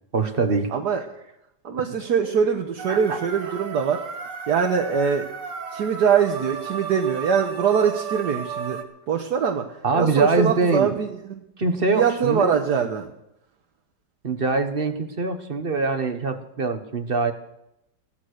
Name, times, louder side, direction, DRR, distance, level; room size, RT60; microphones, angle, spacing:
voice 1, 0.1-0.7 2.9-3.2 9.8-11.0 11.6-12.6 14.2-17.3, right 4 dB, 35° right, 8 dB, 1.2 m, -23 dB
voice 2, 0.7-1.0 1.6-4.0 4.5-5.3 5.7-8.8 9.1-9.6 9.9-11.4 11.9-13.1, right 7 dB, 75° right, 2 dB, 1.6 m, -23 dB
sound 1, 2.8-8.8, right 6 dB, 90° right, 2.1 m, -34 dB
16.0 x 13.0 x 6.5 m, 0.83 s
omnidirectional pair, 1.8 m